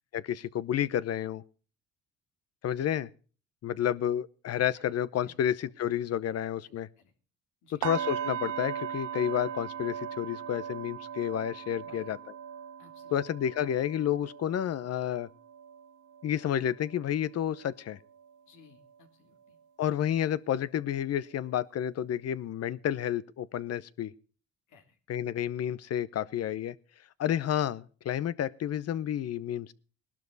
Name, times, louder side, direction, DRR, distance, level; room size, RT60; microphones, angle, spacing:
voice 1, 0.1-1.4 2.6-3.1 3.6-6.9 7.8-12.2 13.1-15.3 16.2-18.0 19.8-24.1 25.1-26.7 27.2-29.7, left 10 dB, 55° left, 0.9 m, -30 dB
voice 2, 5.2-5.8 6.2-7.1 7.6-7.9 11.8-12.1 12.8-13.2 18.5-19.9 24.7-25.0, left 4 dB, 80° left, 3.4 m, -61 dB
sound 1, 7.8-17.7 18.1-18.4 18.8-18.9, right 8 dB, 75° right, 1.3 m, -39 dB
18.0 x 12.0 x 4.0 m
cardioid pair, 105°, 30 cm